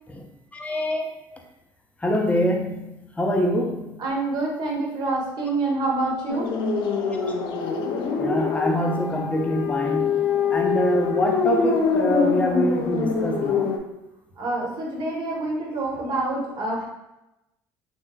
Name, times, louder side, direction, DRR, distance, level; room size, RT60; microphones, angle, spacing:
voice 1, 0.5-1.1 2.0-4.0 7.2-7.3 8.2-10.2 10.5-13.7, equal, 15° left, 1 dB, 0.5 m, -25 dB
voice 2, 4.0-6.5 14.4-16.9, right 2 dB, 50° right, -2 dB, 1.0 m, -26 dB
sound 1, 6.3-13.8, left 5 dB, 65° left, 0.4 m, -24 dB
3.2 x 3.0 x 2.3 m, 0.93 s
supercardioid pair, 90°, 9 cm